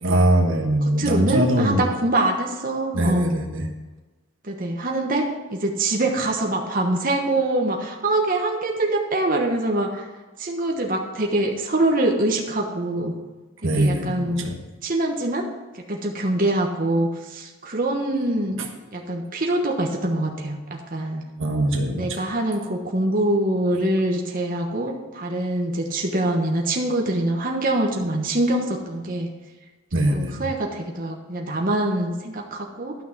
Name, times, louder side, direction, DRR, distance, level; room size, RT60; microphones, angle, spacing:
voice 1, 0.0-1.9 2.9-3.7 13.6-14.6 18.6-18.7 21.4-22.3 29.9-30.5, right 1 dB, 65° right, 3 dB, 1.3 m, -22 dB
voice 2, 1.0-3.3 4.4-10.1 10.4-13.1 13.8-14.5 14.8-15.5 15.7-18.6 18.9-21.2 21.9-29.3 30.1-32.9, right 1 dB, 40° right, 1 dB, 1.3 m, -24 dB
12.0 x 6.1 x 6.0 m, 1.2 s
head